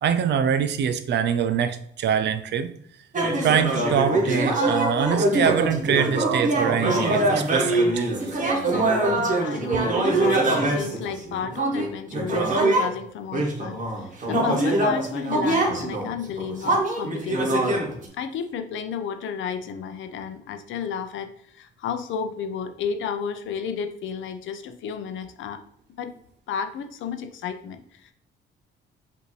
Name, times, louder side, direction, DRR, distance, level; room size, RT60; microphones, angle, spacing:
voice 1, 0.0-2.7 3.4-8.1, right 8 dB, 60° right, 10 dB, 0.5 m, -24 dB
sound 1, 3.1-12.9 13.3-18.1, right 2 dB, 40° right, 1.3 m, -23 dB
voice 2, 9.4-17.8 18.1-25.6 26.0-26.1 26.5-28.1, left 7 dB, 75° left, 8 dB, 0.5 m, -32 dB
5.3 x 2.7 x 3.1 m, 0.68 s
cardioid pair, 90°, 20 cm